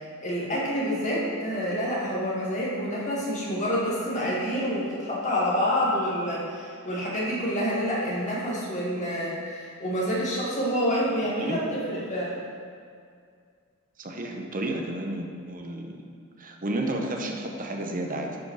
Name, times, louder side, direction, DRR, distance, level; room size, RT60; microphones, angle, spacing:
voice 1, 0.0-12.4, equal, 35° left, -6 dB, 2.3 m, -28 dB
voice 2, 14.0-16.0 16.4-18.4, right 1 dB, 40° right, 2 dB, 1.0 m, -32 dB
11.5 x 5.1 x 4.8 m, 2.2 s
head